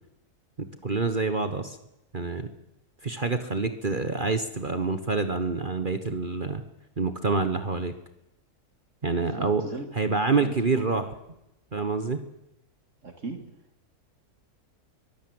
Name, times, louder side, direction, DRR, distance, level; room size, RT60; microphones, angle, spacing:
voice 1, 0.6-1.8 2.1-2.5 3.0-6.6 7.0-7.9 9.0-9.6 9.9-11.0 11.7-12.2, right 4 dB, 35° right, 9 dB, 1.3 m, -27 dB
voice 2, 9.2-9.9 10.2-11.0 13.0-13.5, right 3 dB, 50° right, 6 dB, 2.2 m, -38 dB
23.5 x 15.5 x 8.0 m, 0.88 s
omnidirectional pair, 1.6 m